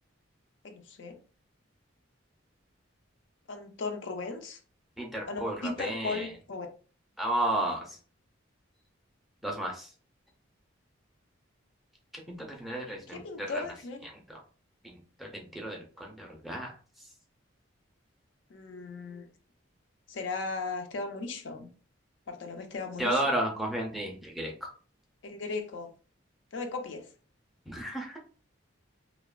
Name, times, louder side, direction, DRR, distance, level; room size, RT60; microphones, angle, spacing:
voice 1, 0.6-1.2 3.5-4.6 5.3-6.7 13.1-14.0 18.5-19.2 20.1-21.7 22.3-23.2 25.2-25.9 26.5-27.1, left 3 dB, 60° left, 0.4 m, -37 dB
voice 2, 5.0-6.3 7.2-8.0 9.4-9.9 12.1-13.6 14.3-14.4 14.8-14.9 15.2-16.7 23.0-24.7 27.7-28.2, right 1 dB, ahead, 0.4 m, -33 dB
2.7 x 2.1 x 2.3 m
head